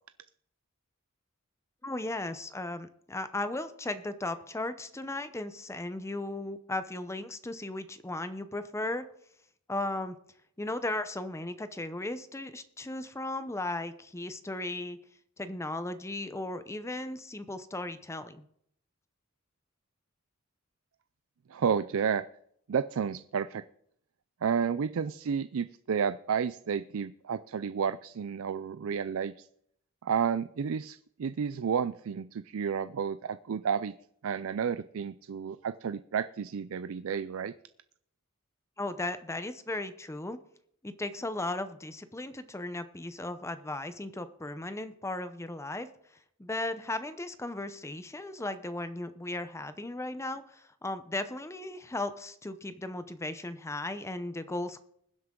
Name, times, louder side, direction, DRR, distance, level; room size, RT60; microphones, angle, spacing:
voice 1, 1.8-9.0 9.7-10.2 10.6-15.0 15.4-18.4 38.8-40.4 40.8-45.9 46.4-54.8, left 2 dB, 15° left, 11 dB, 0.6 m, -36 dB
voice 2, 21.5-22.3 22.7-23.6 24.4-29.5 30.0-33.9 34.2-37.5, right 7 dB, 65° right, 13 dB, 0.4 m, -31 dB
21.5 x 7.9 x 3.8 m, 0.69 s
head